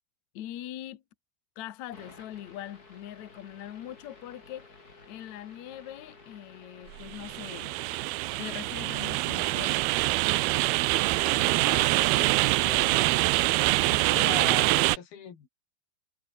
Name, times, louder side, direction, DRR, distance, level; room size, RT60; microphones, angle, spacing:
voice 1, 0.3-1.0 1.6-4.7 5.1-7.8 8.4-9.8 13.9-14.0, left 12 dB, 60° left, 2.2 m, -42 dB
sound 1, 1.9-14.0, left 3 dB, 25° left, 3.9 m, -53 dB
sound 2, 6.9-15.0, right 20 dB, 85° right, 2.6 m, -25 dB
voice 2, 11.3-12.4 12.6-13.2 14.1-15.5, left 8 dB, 80° left, 5.0 m, -40 dB
omnidirectional pair, 4.3 m